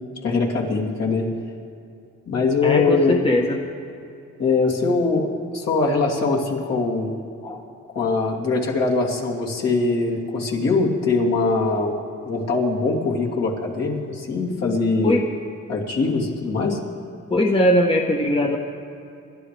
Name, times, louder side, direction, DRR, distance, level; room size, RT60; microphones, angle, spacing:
voice 1, 0.2-1.3 2.3-3.2 4.4-5.3 5.5-7.2 7.9-11.9 12.2-15.2 15.7-16.8, left 3 dB, 55° left, -3 dB, 3.0 m, -22 dB
voice 2, 2.6-3.6 7.4-7.6 15.0-15.2 17.3-18.6, left 1 dB, 20° left, 1 dB, 1.2 m, -20 dB
27.5 x 12.0 x 3.5 m, 2.6 s
cardioid pair, 90°, 30 cm